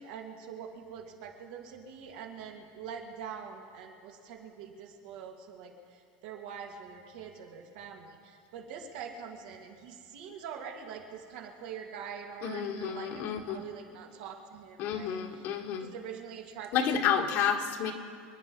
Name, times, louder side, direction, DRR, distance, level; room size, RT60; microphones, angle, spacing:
voice 1, 0.0-15.4 15.8-17.3, right 7 dB, 70° right, 1 dB, 2.4 m, -44 dB
voice 2, 12.4-13.6 14.8-15.9 16.7-17.9, left 8 dB, 55° left, 4 dB, 1.6 m, -30 dB
27.5 x 9.8 x 5.4 m, 2.3 s
supercardioid pair, 145°, 4 cm